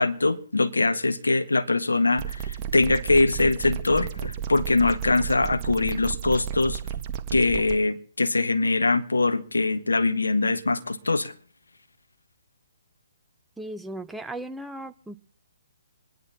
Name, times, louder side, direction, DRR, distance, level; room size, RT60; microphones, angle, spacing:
voice 1, 0.0-6.8 7.3-11.3, left 3 dB, 85° left, 1.3 m, -23 dB
sound 1, 2.2-7.8, right 9 dB, 25° right, 1.6 m, -33 dB
voice 2, 13.6-15.2, right 1 dB, 5° right, 0.7 m, -36 dB
25.5 x 11.0 x 4.1 m
figure-of-eight pair, 135°, 0 cm